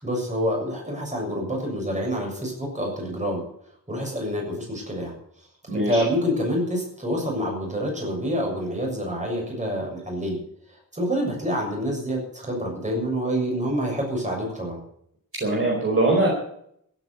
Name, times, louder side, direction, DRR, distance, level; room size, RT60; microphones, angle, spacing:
voice 1, 0.0-3.4 3.9-5.1 5.7-10.4 10.7-14.8, equal, 20° right, 0 dB, 7.0 m, -27 dB
voice 2, 5.7-6.0 15.4-16.3, right 2 dB, 40° right, -2 dB, 4.6 m, -21 dB
16.0 x 9.2 x 8.1 m, 0.69 s
wide cardioid pair, 145°, 34 cm